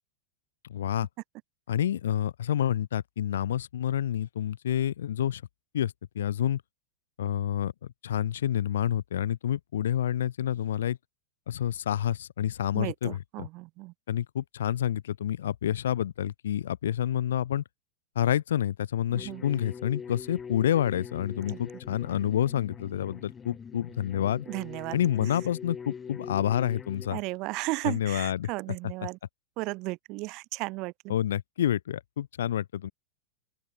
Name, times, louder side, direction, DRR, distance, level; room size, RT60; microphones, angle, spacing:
voice 1, 0.7-1.1 1.7-5.4 5.7-6.6 7.2-7.7 8.0-11.0 11.5-13.5 14.1-17.6 18.1-24.5 24.9-27.2 27.8-28.5 31.1-32.9, left 10 dB, 65° left, 1.0 m, -28 dB
voice 2, 12.7-13.9 19.1-19.4 21.5-21.6 24.5-25.0 27.1-29.2 29.6-31.1, right 23 dB, 45° right, 0.4 m, -35 dB
sound 1, 19.1-27.1, left 6 dB, 20° left, 1.3 m, -43 dB
open air
figure-of-eight pair, 95°, 0 cm